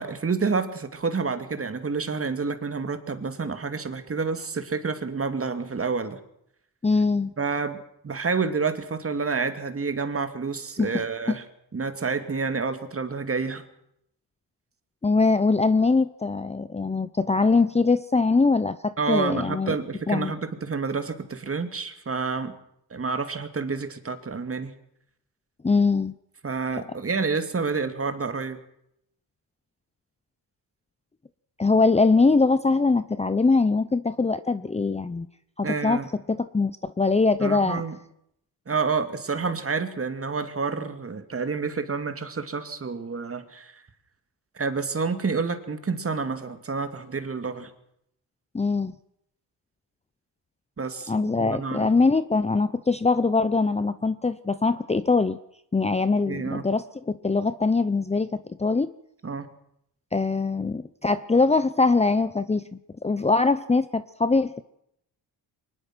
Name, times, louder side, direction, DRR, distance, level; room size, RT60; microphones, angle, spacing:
voice 1, 0.0-6.2 7.4-11.4 11.7-13.6 19.0-22.5 22.9-24.7 26.4-28.6 35.6-36.1 37.4-38.0 38.7-43.7 44.5-47.7 50.8-51.9 56.3-56.6 59.2-59.5, right 4 dB, 30° right, 8 dB, 2.7 m, -29 dB
voice 2, 6.8-7.3 10.8-10.9 11.3-11.4 15.0-19.7 20.1-20.3 25.6-26.1 31.6-35.3 35.6-36.0 36.3-37.8 48.5-48.9 51.1-55.4 55.7-58.9 60.1-62.6 63.0-64.6, left 3 dB, 15° left, 13 dB, 0.8 m, -22 dB
23.5 x 21.0 x 6.3 m, 0.75 s
cardioid pair, 95°, 42 cm